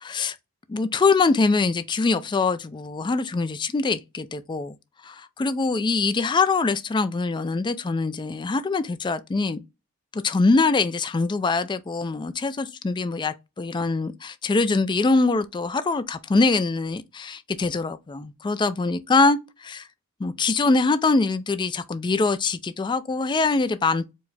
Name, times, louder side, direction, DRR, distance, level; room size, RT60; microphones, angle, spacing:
voice 1, 0.0-0.4 0.7-4.7 5.0-9.6 10.1-19.9 20.2-24.1, left 3 dB, 20° left, 0.3 m, -23 dB
4.6 x 2.1 x 4.0 m
head